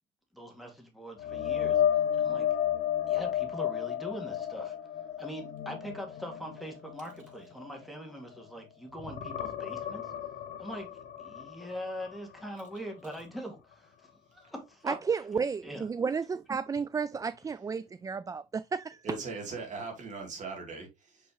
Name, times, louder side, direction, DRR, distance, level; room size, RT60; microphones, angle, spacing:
voice 1, 0.3-1.8 2.1-2.5 3.1-4.8 5.2-10.1 10.6-10.9 11.2-15.0 15.6-15.9, equal, ahead, 2.2 m, -42 dB
sound 1, 1.2-8.6 8.9-12.8 13.2-13.4 16.8-16.9, left 10 dB, 55° left, 1.3 m, -33 dB
voice 2, 14.9-19.0, right 5 dB, 20° right, 0.3 m, -32 dB
voice 3, 19.0-21.3, right 3 dB, 45° right, 3.1 m, -39 dB
6.1 x 5.4 x 3.0 m
cardioid pair, 110°, 17 cm